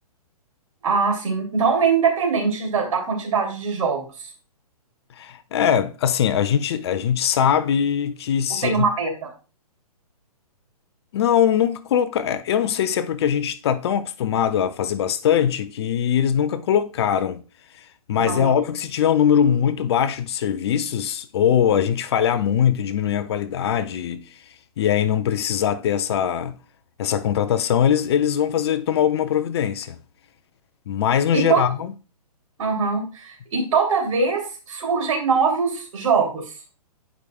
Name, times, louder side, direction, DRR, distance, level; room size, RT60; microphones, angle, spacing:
voice 1, 0.8-4.0 8.6-9.3 18.2-18.5 31.3-31.6 32.6-36.4, right 5 dB, 55° right, 2.8 m, -22 dB
voice 2, 5.2-8.8 11.1-17.4 18.1-24.3 24.8-26.6 27.0-30.0 30.9-31.9, left 9 dB, 40° left, 0.5 m, -21 dB
10.0 x 4.9 x 2.3 m
hypercardioid pair, 140°, 20 cm